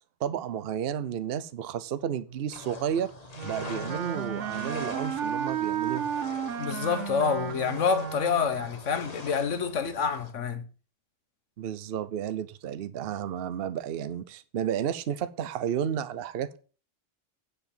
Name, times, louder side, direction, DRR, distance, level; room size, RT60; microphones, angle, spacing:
voice 1, 0.2-3.1 3.4-6.1 11.6-16.6, right 9 dB, 55° right, 0.8 m, -32 dB
sound 1, 2.5-10.3, left 3 dB, 35° left, 1.3 m, -44 dB
Wind instrument woodwind instrument, 3.3-8.7, right 8 dB, 75° right, 1.3 m, -33 dB
voice 2, 6.6-10.6, left 6 dB, 75° left, 1.4 m, -27 dB
9.3 x 5.1 x 7.1 m
omnidirectional pair, 1.3 m